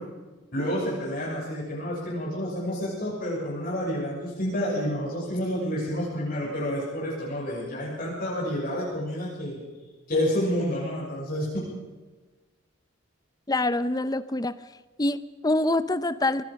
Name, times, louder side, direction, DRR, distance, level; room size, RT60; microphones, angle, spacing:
voice 1, 0.5-9.6 10.1-11.6, equal, 45° left, -5 dB, 6.8 m, -29 dB
voice 2, 13.5-14.6 15.0-16.4, left 2 dB, 20° left, 14 dB, 0.7 m, -25 dB
25.0 x 20.5 x 5.4 m, 1.3 s
head